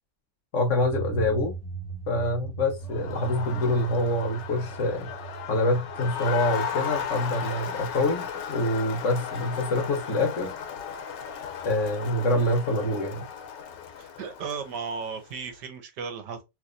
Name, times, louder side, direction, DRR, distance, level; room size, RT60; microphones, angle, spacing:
voice 1, 0.5-1.6 2.1-5.1 5.5-10.5 11.6-13.2, left 1 dB, 50° left, 1.1 m, -26 dB
sound 1, 0.7-7.3, right 6 dB, 15° left, 1.1 m, -38 dB
Crowd, 2.8-15.4, left 7 dB, 90° left, 1.4 m, -36 dB
voice 2, 14.0-16.4, right 5 dB, 75° right, 1.4 m, -35 dB
3.2 x 3.0 x 2.5 m
omnidirectional pair, 1.8 m